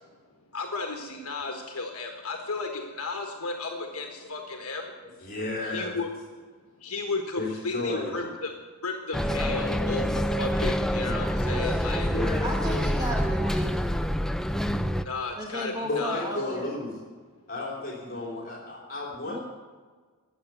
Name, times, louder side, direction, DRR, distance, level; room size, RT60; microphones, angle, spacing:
voice 1, 0.5-4.9 5.6-6.1 6.8-8.5 8.8-12.1 15.0-16.2, left 3 dB, 70° left, 3 dB, 1.4 m, -34 dB
voice 2, 5.2-5.9 7.4-8.3 9.8-10.0 11.0-12.5 15.8-16.9 17.5-19.4, left 2 dB, 45° left, -3 dB, 3.3 m, -33 dB
Bus, 9.1-15.0, equal, ahead, 0.4 m, -27 dB
voice 3, 12.4-13.8 15.4-16.7 19.2-19.4, right 1 dB, 15° right, -1 dB, 1.5 m, -34 dB
15.0 x 7.4 x 9.3 m, 1.5 s
head